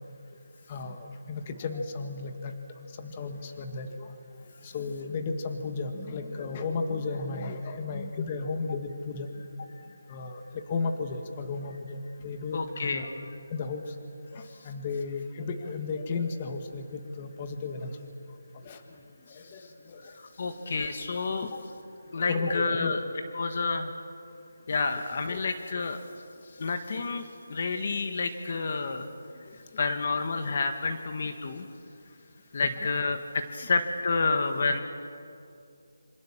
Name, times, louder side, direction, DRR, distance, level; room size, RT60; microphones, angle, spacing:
voice 1, 0.7-2.5 3.0-4.1 4.6-9.3 10.1-13.1 13.5-13.8 14.3-18.0 18.6-18.8 19.3-20.0 20.4-20.8 22.2-23.0 24.9-25.0 25.3-25.5 29.5-29.6 32.8-32.9, left 4 dB, 25° left, 6 dB, 1.8 m, -34 dB
voice 2, 12.5-13.1 14.4-14.7 19.3-19.4 20.0-21.5 22.1-23.0 23.3-23.9 24.7-26.0 26.6-29.1 29.8-31.7 32.5-34.8, left 4 dB, 45° left, 7 dB, 1.7 m, -29 dB
27.0 x 25.5 x 7.4 m, 2.5 s
figure-of-eight pair, 165°, 0 cm